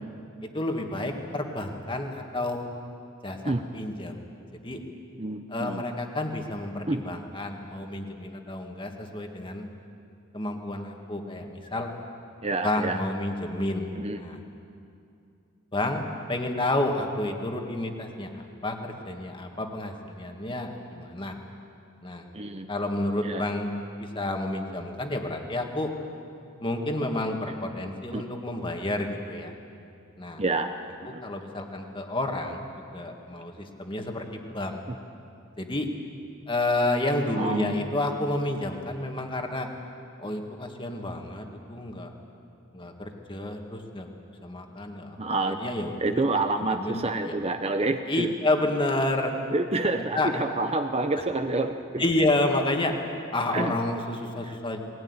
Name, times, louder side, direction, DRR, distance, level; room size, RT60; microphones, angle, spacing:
voice 1, 0.5-2.7 3.2-4.2 4.6-4.8 5.5-9.7 10.3-11.9 12.6-14.4 15.7-21.4 22.0-22.2 22.7-23.7 24.1-25.9 26.6-29.5 30.2-30.4 31.1-32.7 32.9-34.3 34.5-34.8 35.6-35.9 36.5-39.7 40.2-42.1 42.7-44.1 44.4-46.2 46.7-47.4 48.1-49.3 50.1-50.3 52.0-52.9 53.3-54.8, left 1 dB, 25° left, 3 dB, 2.0 m, -30 dB
voice 2, 5.2-5.8 6.9-7.0 12.4-13.0 14.0-14.2 22.3-22.7 23.2-23.4 28.1-28.2 30.4-30.7 31.0-31.2 34.9-35.0 37.3-37.8 45.2-45.6 46.0-48.3 49.5-52.0 53.5-53.7 54.4-54.6, right 2 dB, 30° right, 7 dB, 0.8 m, -28 dB
20.5 x 17.5 x 9.8 m, 2.6 s
head